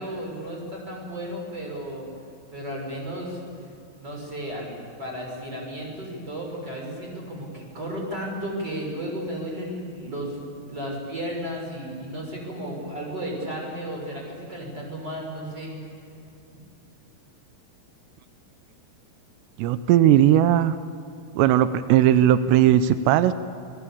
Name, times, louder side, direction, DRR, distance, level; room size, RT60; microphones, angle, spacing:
voice 1, 0.0-2.1 2.5-3.4 4.0-15.9, equal, 25° right, -1 dB, 6.6 m, -34 dB
voice 2, 19.6-20.8 21.4-23.3, right 11 dB, 85° right, 12 dB, 2.9 m, -18 dB
27.5 x 20.5 x 8.6 m, 2.7 s
omnidirectional pair, 4.8 m